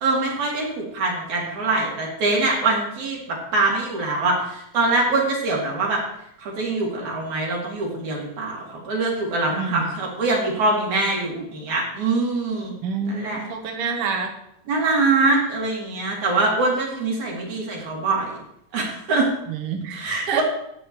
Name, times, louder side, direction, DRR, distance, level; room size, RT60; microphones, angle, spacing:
voice 1, 0.0-6.0 6.4-12.7 13.1-13.4 14.7-18.4 18.7-19.3 19.9-20.4, right 3 dB, 80° right, -2 dB, 3.7 m, -23 dB
voice 2, 9.6-9.9 12.8-14.3 19.5-20.4, right 6 dB, 60° right, 2 dB, 1.9 m, -28 dB
12.5 x 8.6 x 3.1 m, 0.77 s
omnidirectional pair, 3.3 m